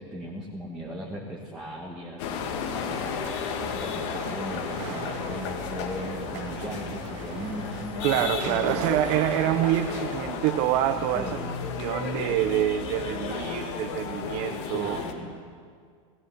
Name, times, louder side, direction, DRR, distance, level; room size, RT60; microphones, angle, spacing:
voice 1, 0.0-3.1 3.4-8.9 11.1-11.7 14.6-15.3, equal, 5° right, -5 dB, 2.3 m, -38 dB
sound 1, 2.2-15.1, left 6 dB, 60° left, 2.6 m, -33 dB
sound 2, 3.2-10.2, right 8 dB, 70° right, 2.2 m, -38 dB
voice 2, 8.0-11.4 11.8-15.3, right 12 dB, 45° right, 6 dB, 1.1 m, -26 dB
18.5 x 17.0 x 9.7 m, 2.1 s
supercardioid pair, 160°, 17 cm